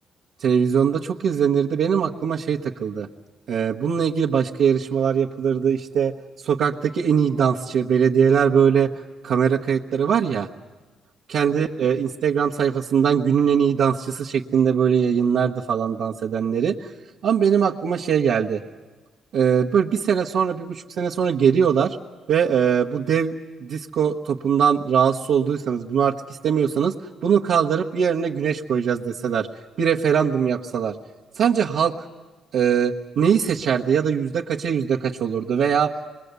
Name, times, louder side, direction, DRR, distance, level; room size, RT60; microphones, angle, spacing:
voice 1, 0.4-3.1 3.5-6.1 6.4-8.9 9.2-10.5 11.3-16.9 17.2-18.6 19.3-22.0 22.3-23.3 23.6-26.2 26.4-26.9 27.2-29.5 29.8-31.0 31.3-31.9 32.5-36.0, right 7 dB, 75° right, -4 dB, 1.1 m, -21 dB
26.0 x 21.5 x 8.2 m, 1.2 s
cardioid pair, 120°, 0 cm